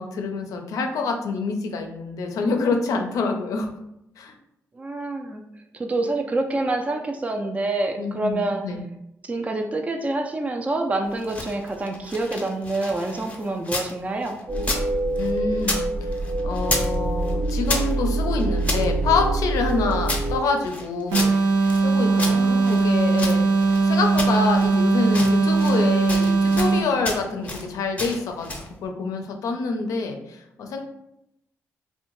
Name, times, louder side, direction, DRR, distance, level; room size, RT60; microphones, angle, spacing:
voice 1, 0.0-3.7 4.2-4.3 8.0-8.8 15.2-16.1 16.4-21.3 21.8-23.5 23.8-28.5 28.8-30.8, left 4 dB, 80° left, 4 dB, 0.4 m, -26 dB
voice 2, 4.8-5.4 5.7-8.6 9.3-14.4 22.1-22.9, right 2 dB, 25° right, 4 dB, 0.3 m, -27 dB
sound 1, 11.1-13.9 14.2-15.9 16.1-17.0 17.2-18.8 19.4-21.8 22.2-23.8 24.2-24.7 25.1-25.8 26.1-26.7 27.0-27.7 28.0-28.7, left 2 dB, 25° left, 0.6 m, -31 dB
sound 2, 14.5-20.4, right 2 dB, 60° right, 1.0 m, -25 dB
sound 3, 21.1-27.0, right 3 dB, 80° right, 0.5 m, -20 dB
2.6 x 2.1 x 3.0 m, 0.83 s
cardioid pair, 70°, 6 cm